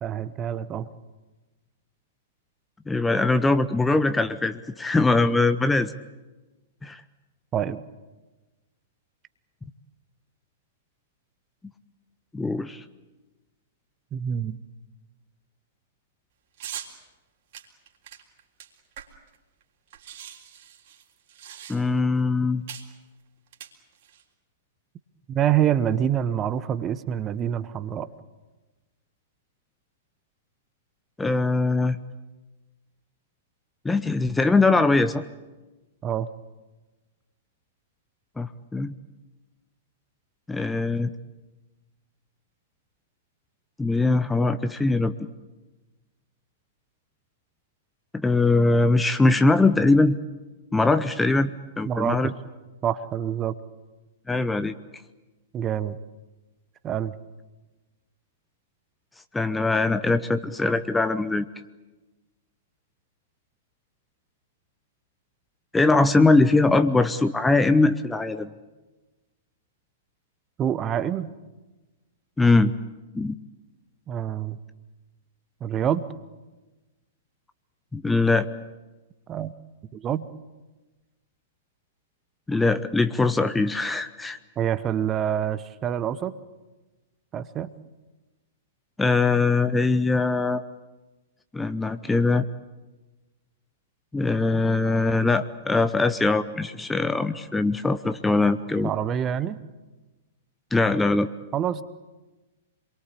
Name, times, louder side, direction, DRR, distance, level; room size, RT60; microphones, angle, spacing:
voice 1, 0.0-0.9 7.5-7.8 14.1-14.6 25.3-28.1 36.0-36.3 51.8-52.2 52.8-53.5 55.5-56.0 56.8-57.1 70.6-71.3 74.1-74.6 75.6-76.1 79.3-79.5 79.9-80.3 84.6-86.3 87.3-87.7 98.8-99.6 101.5-101.8, right 9 dB, 25° right, 14 dB, 1.1 m, -26 dB
voice 2, 2.9-5.9 6.8-7.0 12.3-12.8 21.7-22.6 31.2-32.0 33.8-35.2 38.4-38.9 40.5-41.1 43.8-45.1 48.2-50.2 50.7-51.5 51.8-52.3 54.3-54.7 59.3-61.4 65.7-68.5 72.4-72.7 73.1-73.4 77.9-78.5 82.5-84.4 89.0-90.6 91.5-92.5 94.1-98.9 100.7-101.3, left 3 dB, 10° left, 11 dB, 0.8 m, -21 dB
sound 1, 16.6-16.9 17.5-19.4 19.6-19.7 19.9-22.1 22.7-22.9 23.5-24.2, right 10 dB, 50° right, 3.6 m, -41 dB
27.5 x 22.5 x 8.5 m, 1.2 s
figure-of-eight pair, 105°, 0 cm